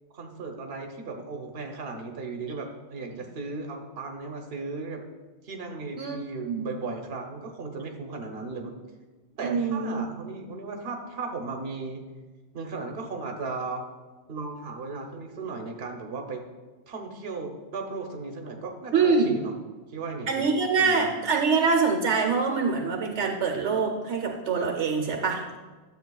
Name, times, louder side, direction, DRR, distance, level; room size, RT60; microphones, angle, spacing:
voice 1, 0.1-5.0 5.4-8.7 9.4-12.1 12.5-13.8 14.3-16.4 16.9-19.5 19.9-21.1, right 3 dB, 60° right, 3 dB, 1.2 m, -36 dB
voice 2, 6.0-6.7 9.4-10.0 18.9-19.4 20.3-25.6, right 4 dB, 80° right, 3 dB, 1.2 m, -25 dB
12.0 x 7.5 x 2.3 m, 1.3 s
omnidirectional pair, 1.2 m